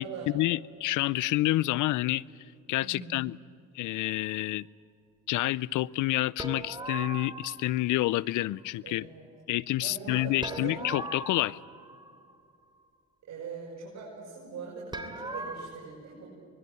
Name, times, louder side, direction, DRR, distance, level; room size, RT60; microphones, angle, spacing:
voice 1, 0.3-2.2 2.7-3.4 3.7-4.7 5.3-9.1 9.5-11.6, left 16 dB, 85° left, 22 dB, 0.6 m, -28 dB
voice 2, 2.8-3.3 8.8-9.3 9.8-10.9 13.3-16.3, right 5 dB, 65° right, -5 dB, 6.7 m, -42 dB
sound 1, 6.4-7.7 10.4-12.3 14.9-15.7, right 2 dB, 15° right, 2.9 m, -39 dB
25.0 x 21.0 x 9.5 m, 2.3 s
cardioid pair, 90°, 30 cm